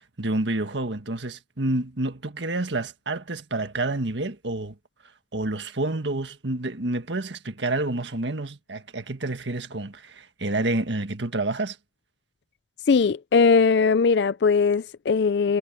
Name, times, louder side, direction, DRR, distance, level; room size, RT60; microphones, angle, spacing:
voice 1, 0.2-4.7 5.3-11.8, right 2 dB, 85° right, 1.7 m, -28 dB
voice 2, 12.9-15.6, left 5 dB, 75° left, 0.4 m, -20 dB
head